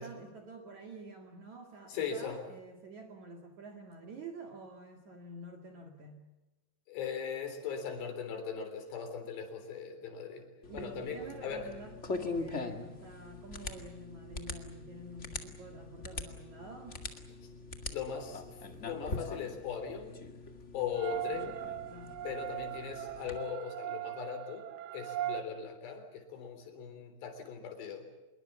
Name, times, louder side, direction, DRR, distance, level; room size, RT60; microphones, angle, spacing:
voice 1, 0.0-6.2 10.7-17.0 21.3-21.5 21.9-22.2, right 2 dB, 50° right, 3 dB, 3.1 m, -48 dB
voice 2, 1.9-2.5 6.9-11.7 17.9-20.2 20.7-21.6 22.2-28.1, left 6 dB, 85° left, 7 dB, 5.7 m, -39 dB
sound 1, 10.6-23.4, left 3 dB, 35° left, 1.1 m, -43 dB
sound 2, 20.9-25.4, right 13 dB, 80° right, 1.6 m, -39 dB
26.0 x 22.5 x 7.1 m, 1.1 s
omnidirectional pair, 4.8 m